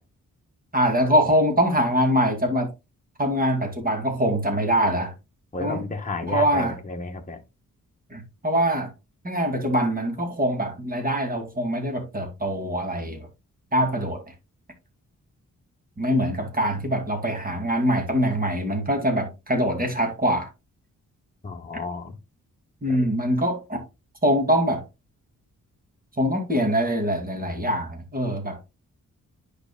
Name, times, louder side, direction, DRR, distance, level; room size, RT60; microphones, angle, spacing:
voice 1, 0.7-2.7 3.2-5.1 5.6-5.8 6.2-6.8 8.1-8.9 9.2-13.3 13.7-14.2 16.0-20.5 22.8-23.8 24.2-24.8 26.2-28.6, equal, 25° right, 2.5 m, -23 dB
voice 2, 5.5-7.4 21.4-22.2 22.9-23.1, left 3 dB, 25° left, 1.2 m, -32 dB
9.9 x 5.3 x 2.3 m
wide cardioid pair, 115°, 32 cm